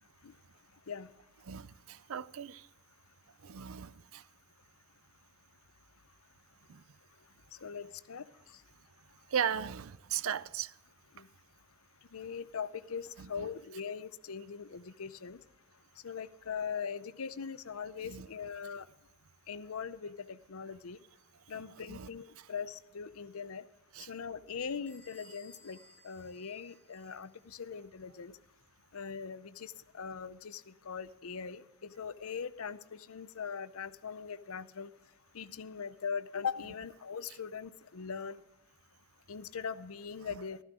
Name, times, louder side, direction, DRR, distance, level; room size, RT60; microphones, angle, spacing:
voice 1, 1.4-2.7 3.4-4.3 6.7-6.8 9.3-10.7 13.2-13.5 18.0-18.3 21.5-22.1 22.4-22.5 23.9-24.1 40.2-40.4, right 8 dB, 65° right, 0.5 m, -37 dB
voice 2, 7.5-8.6 11.1-11.3 12.1-15.4 16.0-18.9 19.5-21.0 21.5-23.6 24.1-25.8 26.0-28.4 28.9-34.9 35.3-38.4 39.3-40.6, left 6 dB, 75° left, 0.6 m, -41 dB
Bell / Squeak, 24.9-27.4, left 2 dB, 5° left, 4.3 m, -60 dB
15.5 x 13.5 x 3.7 m
head